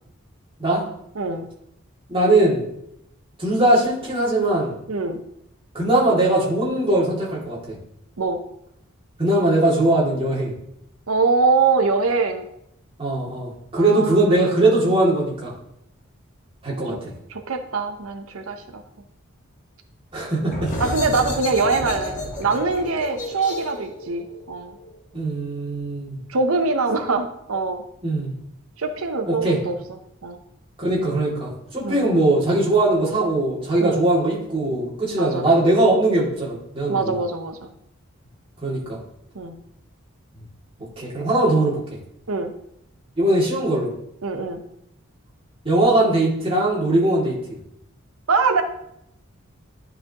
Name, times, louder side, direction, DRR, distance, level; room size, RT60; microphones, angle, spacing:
voice 1, 1.1-1.5 4.9-5.2 8.2-8.4 11.1-12.5 13.7-14.4 17.3-18.8 20.8-24.7 26.3-27.8 28.8-30.4 31.8-32.1 33.8-34.1 35.2-35.4 36.9-37.6 39.3-39.6 42.3-42.5 44.2-44.6 48.3-48.6, right 4 dB, 85° right, 7 dB, 0.8 m, -23 dB
voice 2, 2.1-2.6 3.4-4.7 5.7-7.8 9.2-10.5 13.0-15.5 16.6-17.1 20.1-20.7 25.1-26.2 28.0-28.3 29.3-29.6 30.8-37.1 38.6-39.0 41.0-41.8 43.2-43.9 45.6-47.3, right 2 dB, 25° right, -6 dB, 2.5 m, -20 dB
sound 1, 20.4-25.8, left 1 dB, 35° left, 1.4 m, -32 dB
11.0 x 5.0 x 3.0 m, 0.77 s
head